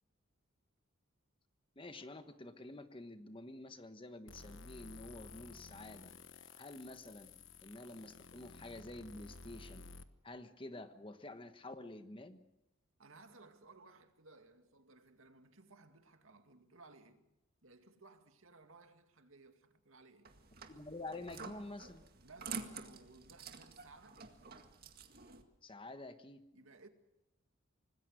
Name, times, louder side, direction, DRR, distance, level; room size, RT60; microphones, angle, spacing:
voice 1, 1.8-6.1 6.6-7.3 7.6-9.8 10.2-12.4 20.7-22.0 25.6-26.4, left 2 dB, 25° left, 1.3 m, -49 dB
sound 1, 4.3-10.0, left 4 dB, 65° left, 1.2 m, -54 dB
voice 2, 13.0-17.2 17.6-20.3 22.2-24.3 26.5-26.9, right 3 dB, 75° right, 2.3 m, -60 dB
sound 2, 20.2-25.4, right 5 dB, 45° right, 2.0 m, -49 dB
25.5 x 20.0 x 6.5 m
head